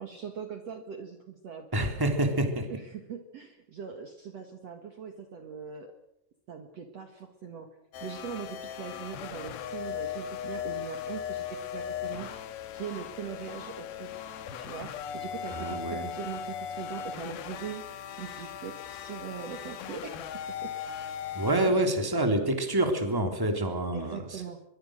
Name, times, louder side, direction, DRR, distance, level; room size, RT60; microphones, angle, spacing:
voice 1, 0.0-2.1 2.7-5.9 6.5-7.7 8.0-12.3 12.7-14.2 14.6-20.2 20.6-20.7 21.7-21.8 23.9-24.6, right 7 dB, 75° right, 6 dB, 1.4 m, -41 dB
voice 2, 1.7-2.7 15.5-16.1 21.3-24.4, right 1 dB, 5° right, 5 dB, 2.2 m, -27 dB
sound 1, 7.9-21.7, left 8 dB, 65° left, 2.8 m, -38 dB
24.0 x 23.0 x 6.5 m, 0.80 s
omnidirectional pair, 5.7 m